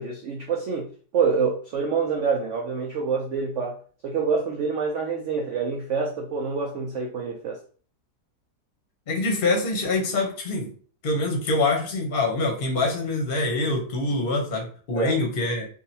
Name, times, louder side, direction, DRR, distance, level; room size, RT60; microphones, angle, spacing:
voice 1, 0.0-7.6 14.9-15.1, right 5 dB, 90° right, 1 dB, 0.6 m, -27 dB
voice 2, 9.1-10.7 11.0-15.7, left 2 dB, 40° left, 1 dB, 0.8 m, -25 dB
3.7 x 2.4 x 2.7 m, 0.43 s
omnidirectional pair, 1.9 m